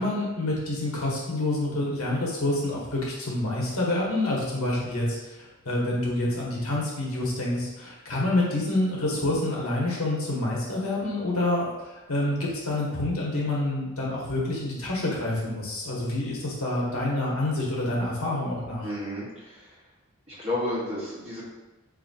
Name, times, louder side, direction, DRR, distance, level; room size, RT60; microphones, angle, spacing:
voice 1, 0.0-5.3 5.6-18.9, left 1 dB, 75° left, -4 dB, 1.1 m, -27 dB
voice 2, 18.8-19.8 20.3-21.4, left 1 dB, 25° right, -8 dB, 1.3 m, -32 dB
4.7 x 2.7 x 2.7 m, 1.1 s
head